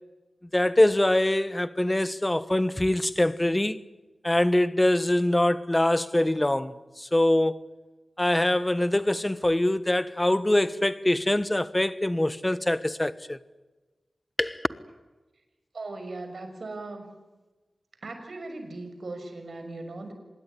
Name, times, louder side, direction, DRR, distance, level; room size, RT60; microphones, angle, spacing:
voice 1, 0.5-3.8 4.2-7.6 8.2-13.4 14.4-14.6, left 1 dB, 20° left, 1.2 m, -24 dB
voice 2, 15.7-17.1 18.0-20.1, right 2 dB, 70° right, 6.0 m, -38 dB
26.0 x 20.5 x 9.9 m
wide cardioid pair, 75°, 0 cm